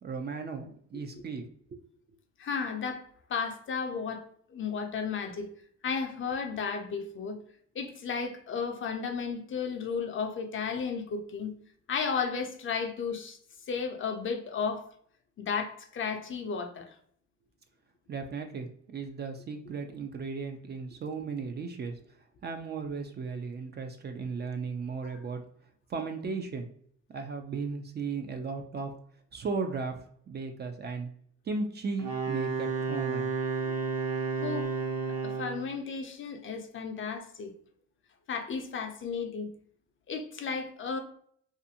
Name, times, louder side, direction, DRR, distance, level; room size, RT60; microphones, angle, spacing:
voice 1, 0.0-0.6 0.9-1.8 18.1-22.0 22.4-25.4 25.9-26.7 27.1-28.9 29.3-30.0 30.3-31.1 31.4-33.3, right 4 dB, 35° right, 0.4 m, -36 dB
voice 2, 2.4-3.0 3.3-5.5 5.8-7.4 7.8-11.5 11.9-13.4 13.7-14.8 15.4-16.9 25.0-25.2 34.4-34.7 35.1-37.5 38.3-39.5 40.1-41.0, left 5 dB, 40° left, 0.5 m, -34 dB
Wind instrument woodwind instrument, 32.0-35.7, right 4 dB, 55° right, 1.0 m, -31 dB
2.5 x 2.5 x 2.7 m
cardioid pair, 90°, 30 cm